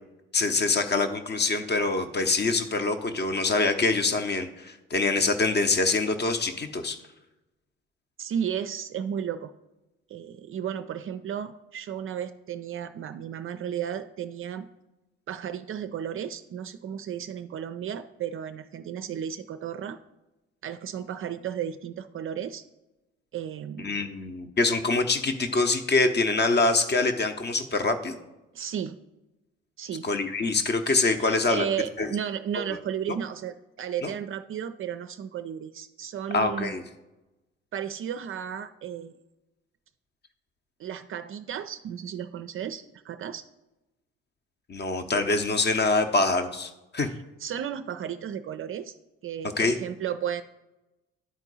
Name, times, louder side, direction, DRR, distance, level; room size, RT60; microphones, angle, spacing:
voice 1, 0.3-7.0 23.8-28.2 30.0-31.7 32.0-32.1 34.0-34.1 36.3-36.8 44.7-47.1 49.6-49.8, left 3 dB, 30° left, 8 dB, 0.8 m, -25 dB
voice 2, 8.2-9.5 10.1-14.7 15.3-20.0 20.6-22.6 23.3-24.0 28.5-29.0 29.8-30.1 31.2-36.7 37.7-39.1 40.8-43.4 47.0-47.1 47.4-48.9 49.2-50.4, right 9 dB, 40° right, 10 dB, 0.4 m, -34 dB
10.0 x 4.4 x 4.1 m, 1.0 s
figure-of-eight pair, 45°, 34 cm